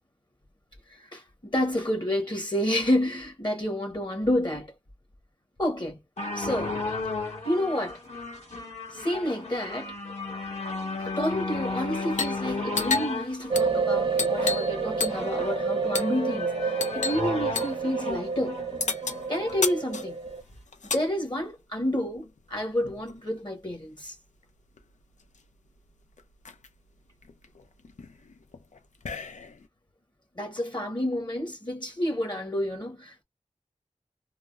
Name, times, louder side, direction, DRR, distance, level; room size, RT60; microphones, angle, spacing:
voice 1, 0.9-4.7 5.6-6.0 6.3-6.8 7.4-8.0 8.9-9.9 11.0-18.6 19.3-20.2 20.9-24.1 30.4-33.2, left 1 dB, 40° left, 1.0 m, -29 dB
sound 1, 6.2-19.7 20.5-20.6, left 3 dB, 70° left, 1.7 m, -34 dB
sound 2, 12.1-12.4 12.7-14.8 15.0-15.4 15.9-16.2 16.8-17.2 17.6-17.8 18.8-21.1 22.1-23.2 24.4-24.5 24.8-25.4 25.9-26.0 26.2-26.7 27.2-29.7, left 4 dB, 90° left, 0.5 m, -33 dB
sound 3, 13.5-20.4, right 5 dB, 45° right, 0.6 m, -29 dB
3.3 x 2.1 x 2.4 m
wide cardioid pair, 60°, 12 cm